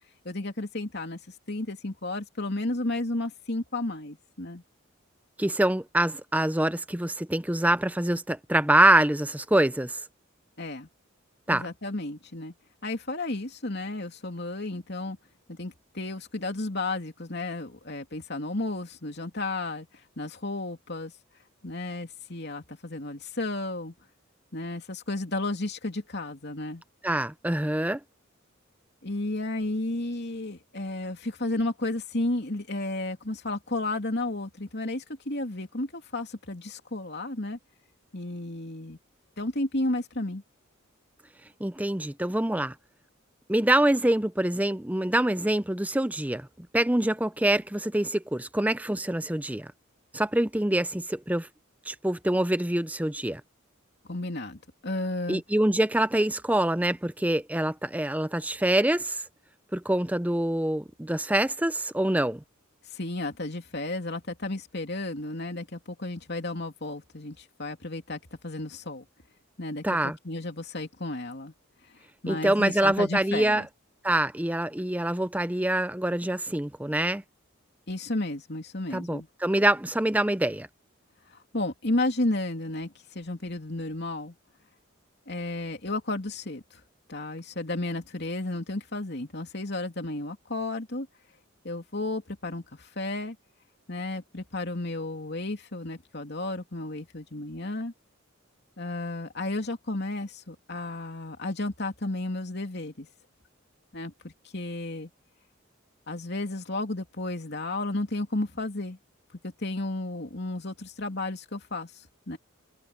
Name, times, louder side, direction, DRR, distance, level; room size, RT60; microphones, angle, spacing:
voice 1, 0.2-1.2 1.5-4.6 10.6-10.9 11.5-12.5 12.8-15.2 15.5-19.9 20.2-21.1 21.6-23.9 24.5-26.8 29.0-37.6 38.1-39.0 39.4-40.4 54.1-55.4 62.9-69.1 69.6-71.5 72.2-73.7 77.9-79.3 81.5-84.3 85.3-86.8 87.1-91.1 91.6-93.4 93.9-97.9 98.8-103.1 103.9-105.1 106.1-109.0 109.4-112.4, left 2 dB, 50° left, 3.0 m, -33 dB
voice 2, 5.4-10.0 11.5-11.6 27.0-28.0 41.6-42.7 43.5-49.7 50.1-51.5 51.9-53.4 55.3-59.2 59.7-62.4 69.8-70.2 72.3-73.6 74.0-77.2 78.9-80.7, right 1 dB, 5° right, 0.6 m, -25 dB
head